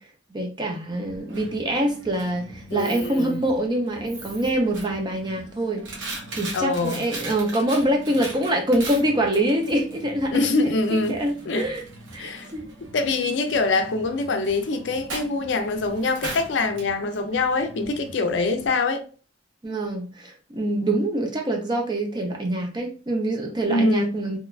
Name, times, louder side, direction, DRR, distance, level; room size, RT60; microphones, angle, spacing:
voice 1, 0.3-5.8 6.4-10.7 11.1-11.8 12.1-12.6 19.6-24.4, right 1 dB, 25° right, 0.5 m, -25 dB
Coin (dropping), 0.9-18.7, right 2 dB, 85° right, 0.9 m, -40 dB
voice 2, 2.7-3.4 6.5-7.0 10.3-11.2 11.5-11.7 12.2-12.5 12.9-19.0 23.7-24.1, left 3 dB, 70° left, 0.4 m, -24 dB
2.9 x 2.3 x 2.3 m
head